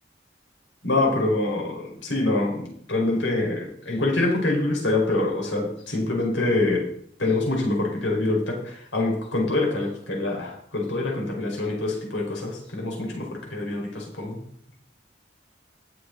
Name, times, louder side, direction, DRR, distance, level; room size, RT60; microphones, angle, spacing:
voice 1, 0.8-6.9 7.2-14.4, left 2 dB, 90° left, -1 dB, 4.8 m, -25 dB
20.0 x 7.8 x 4.0 m, 0.64 s
head